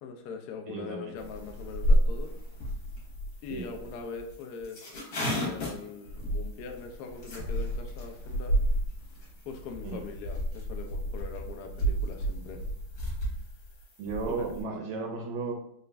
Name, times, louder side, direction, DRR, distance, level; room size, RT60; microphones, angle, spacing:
voice 1, 0.0-2.3 3.4-8.6 9.5-12.6 14.3-14.5, left 5 dB, 80° left, 4 dB, 0.8 m, -42 dB
voice 2, 0.7-1.1 3.5-3.7 9.8-10.0 14.0-15.5, right 4 dB, 75° right, 2 dB, 1.2 m, -34 dB
sound 1, 1.2-14.6, equal, 55° left, 1.6 m, -31 dB
4.0 x 2.4 x 3.3 m, 0.70 s
omnidirectional pair, 2.2 m